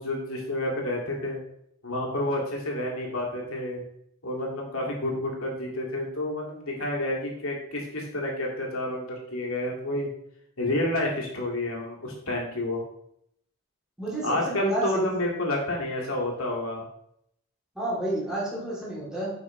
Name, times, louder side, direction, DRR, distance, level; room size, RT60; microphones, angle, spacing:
voice 1, 0.0-1.4 1.8-3.8 4.2-10.1 10.6-12.8 14.2-16.8, left 1 dB, 85° left, -2 dB, 2.1 m, -29 dB
voice 2, 14.0-15.1 17.7-19.3, right 1 dB, 5° right, -7 dB, 2.8 m, -30 dB
9.3 x 5.7 x 3.1 m, 0.74 s
head